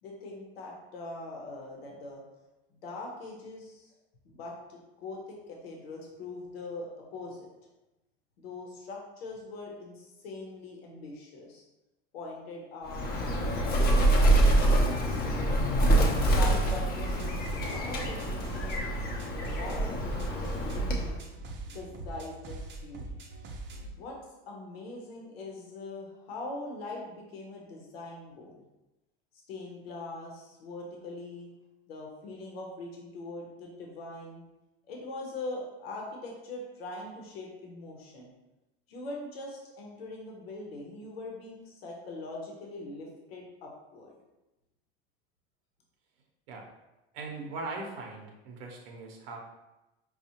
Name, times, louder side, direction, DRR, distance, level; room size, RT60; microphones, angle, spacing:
voice 1, 0.0-2.2 2.8-3.9 4.2-7.4 8.4-11.6 12.1-14.6 15.3-15.7 16.3-18.9 19.3-21.3 21.7-23.2 24.0-24.2 24.5-28.7 29.5-31.5 31.9-34.4 34.9-38.3 38.9-44.2, left 2 dB, 85° left, -1 dB, 0.9 m, -42 dB
Bird, 12.9-21.2, right 1 dB, 35° left, 0.8 m, -26 dB
sound 1, 16.4-23.9, right 2 dB, 40° right, 0.7 m, -42 dB
voice 2, 47.1-49.4, right 3 dB, 70° right, 1 dB, 0.8 m, -40 dB
4.8 x 2.4 x 2.8 m, 0.99 s
hypercardioid pair, 95°, 29 cm